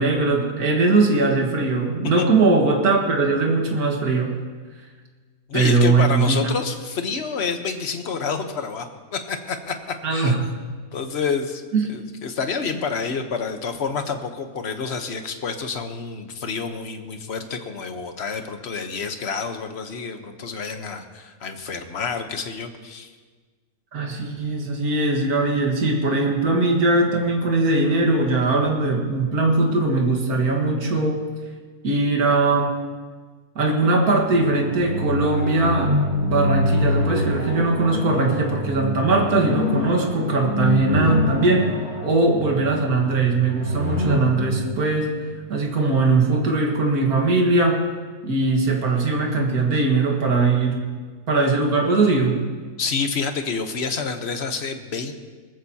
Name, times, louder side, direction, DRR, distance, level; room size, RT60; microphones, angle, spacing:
voice 1, 0.0-4.3 5.5-6.4 10.0-10.4 11.7-11.9 23.9-31.2 31.8-32.7 33.6-36.0 36.2-41.7 42.0-47.8 48.2-50.8 51.3-52.4, right 3 dB, 85° right, 0 dB, 2.1 m, -20 dB
voice 2, 5.5-10.3 10.9-11.6 11.9-23.1 52.8-55.1, left 5 dB, 50° left, 6 dB, 1.2 m, -28 dB
sound 1, 34.3-45.9, left 1 dB, 50° right, 3.8 m, -26 dB
20.5 x 14.0 x 2.8 m, 1.4 s
omnidirectional pair, 1.6 m